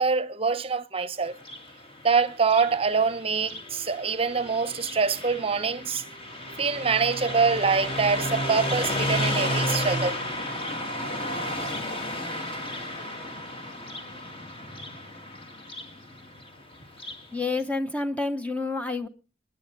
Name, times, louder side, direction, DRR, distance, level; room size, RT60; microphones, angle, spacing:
voice 1, 0.0-1.3 2.0-6.0 6.6-10.2, right 5 dB, 35° right, 0.8 m, -25 dB
Car passing by, 1.3-17.3, left 1 dB, 35° left, 2.0 m, -33 dB
voice 2, 17.3-19.1, left 3 dB, 10° left, 0.6 m, -28 dB
27.5 x 9.7 x 3.9 m
head